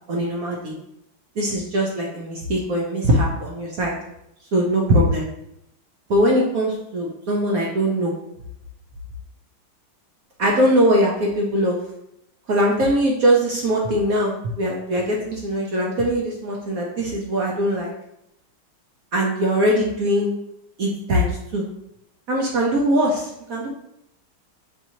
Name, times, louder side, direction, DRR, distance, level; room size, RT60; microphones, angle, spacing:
voice 1, 0.1-0.7 1.4-4.0 4.5-5.3 6.1-8.1 10.4-11.8 12.5-17.9 19.1-20.3 20.8-21.6 22.3-23.7, equal, 70° right, -2 dB, 0.8 m, -21 dB
6.0 x 2.8 x 2.8 m, 0.79 s
omnidirectional pair, 2.3 m